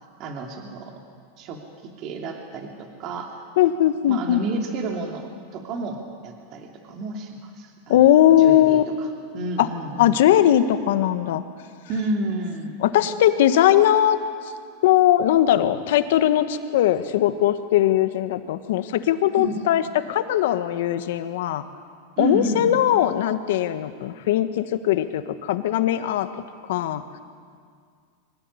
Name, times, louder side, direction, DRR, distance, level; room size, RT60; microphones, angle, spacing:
voice 1, 0.2-0.9 1.4-1.6 2.0-3.4 4.1-8.0 8.4-8.8 9.3-10.2 11.9-12.8 19.4-19.6 22.2-22.8, right 2 dB, 40° right, 2 dB, 2.8 m, -30 dB
voice 2, 3.6-4.4 7.9-8.8 9.6-9.7 10.0-11.4 12.8-14.2 14.8-21.6 22.2-26.3 26.7-27.0, left 12 dB, 70° left, 10 dB, 1.5 m, -19 dB
24.0 x 17.0 x 9.8 m, 2.1 s
supercardioid pair, 140°, 0 cm